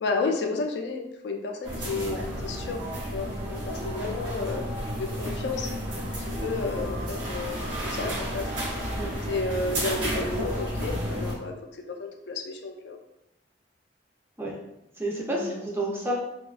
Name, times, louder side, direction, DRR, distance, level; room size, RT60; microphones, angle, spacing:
voice 1, 0.0-2.8 3.1-4.6 4.9-5.7 6.2-8.5 9.3-13.0 15.4-15.6, left 3 dB, 60° left, 3 dB, 0.3 m, -32 dB
sound 1, 1.6-11.3, equal, 80° right, 0.8 m, -32 dB
voice 2, 15.0-16.1, right 1 dB, 10° right, -3 dB, 0.4 m, -30 dB
2.5 x 2.2 x 2.4 m, 0.85 s
head